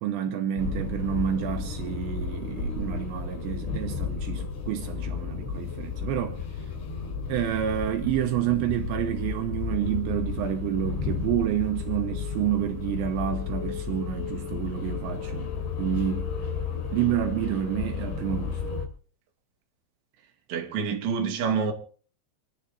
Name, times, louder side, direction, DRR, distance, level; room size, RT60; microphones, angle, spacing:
voice 1, 0.0-6.7 7.3-15.5 15.8-16.3 16.9-18.6, right 11 dB, 75° right, 3.0 m, -29 dB
sound 1, 0.6-18.9, left 5 dB, 70° left, 4.8 m, -33 dB
voice 2, 20.5-21.7, right 6 dB, 50° right, 2.7 m, -27 dB
28.5 x 10.5 x 2.6 m
omnidirectional pair, 5.5 m